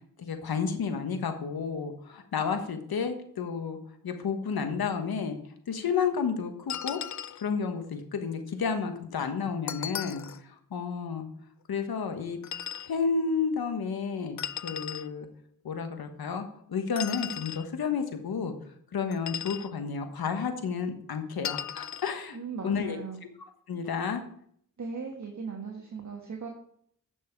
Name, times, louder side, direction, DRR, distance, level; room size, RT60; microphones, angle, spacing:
voice 1, 0.2-3.8 4.0-5.4 5.7-7.0 7.4-11.3 11.7-12.4 12.8-15.3 15.6-18.5 18.9-22.4 22.6-23.0 23.7-24.2, left 5 dB, 85° left, 7 dB, 1.3 m, -31 dB
sound 1, 6.7-7.5 9.7-10.4 12.4-12.9 14.4-15.1 17.0-17.7 19.1-19.7 21.4-22.1, left 9 dB, 55° left, 0.6 m, -36 dB
voice 2, 22.3-23.2 24.8-26.5, right 5 dB, 50° right, 1 dB, 1.5 m, -38 dB
9.0 x 6.1 x 4.6 m, 0.65 s
cardioid pair, 50°, 36 cm